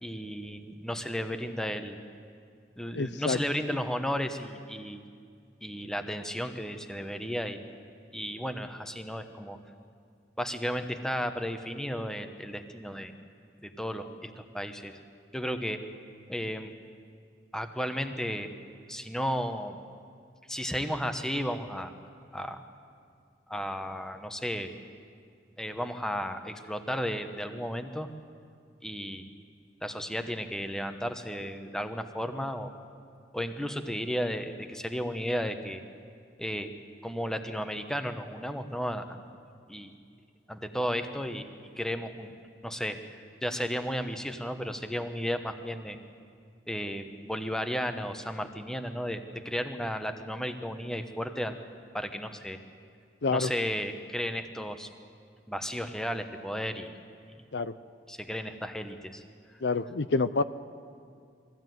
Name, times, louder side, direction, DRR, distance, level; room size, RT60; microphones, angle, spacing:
voice 1, 0.0-2.0 2.8-5.0 5.6-7.6 8.1-9.6 10.4-13.1 13.6-15.0 15.3-15.8 16.3-16.7 17.5-18.5 18.9-19.8 20.5-21.9 22.3-22.6 23.5-24.7 25.6-28.1 28.8-29.2 29.8-32.7 33.3-35.8 36.4-36.7 37.0-39.2 39.7-39.9 40.5-41.5 41.8-42.3 42.6-43.0 43.4-46.0 46.7-51.5 51.9-52.6 53.3-54.9 55.5-56.9 58.1-59.2, equal, 5° left, 7 dB, 1.0 m, -34 dB
voice 2, 2.9-3.4 53.2-53.5 57.5-57.7 59.6-60.4, left 4 dB, 70° left, 13 dB, 0.6 m, -27 dB
22.0 x 15.5 x 9.3 m, 2.3 s
head